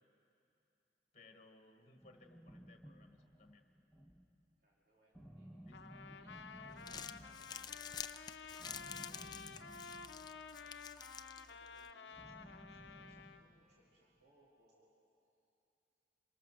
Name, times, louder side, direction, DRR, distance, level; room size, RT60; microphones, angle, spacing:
voice 1, 1.1-3.7 5.6-6.0, left 2 dB, 40° left, 5 dB, 1.5 m, -63 dB
sound 1, 2.0-4.4 5.1-7.7 8.6-10.6 12.1-13.8, equal, 5° left, 1.4 m, -57 dB
voice 2, 4.6-5.5 5.8-8.1 8.4-14.9, right 1 dB, 60° right, -5 dB, 3.1 m, -72 dB
Trumpet, 5.7-13.4, left 5 dB, 85° left, 0.8 m, -52 dB
Crumpling crinkling, 6.6-11.9, left 7 dB, 25° left, 0.4 m, -50 dB
26.0 x 20.0 x 6.4 m, 2.7 s
head